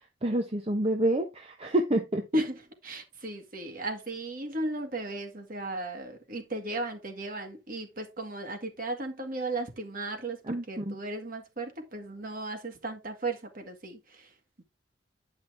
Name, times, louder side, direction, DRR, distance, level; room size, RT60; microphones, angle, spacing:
voice 1, 0.2-2.2 10.5-10.9, right 1 dB, 30° right, 1.0 m, -28 dB
voice 2, 2.3-14.6, right 2 dB, 45° right, 2.0 m, -35 dB
9.7 x 5.8 x 3.5 m
head